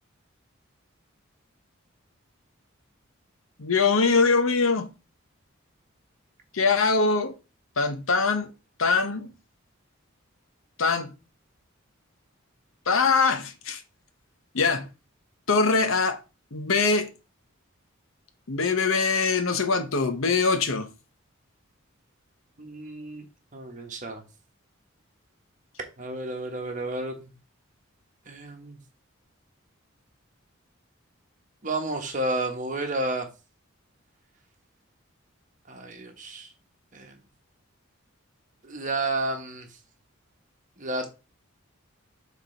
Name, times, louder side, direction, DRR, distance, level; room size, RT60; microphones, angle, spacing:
voice 1, 3.6-4.9 6.5-7.3 7.8-8.5 8.8-9.3 10.8-11.2 12.9-13.8 14.5-14.9 15.5-16.2 16.5-17.1 18.5-20.9, left 4 dB, 75° left, 0.9 m, -23 dB
voice 2, 22.6-24.2 26.0-27.3 28.3-28.8 31.6-33.3 35.7-36.5 36.9-37.2 38.6-39.7 40.8-41.1, right 2 dB, 35° right, 1.2 m, -31 dB
6.1 x 3.7 x 4.4 m
head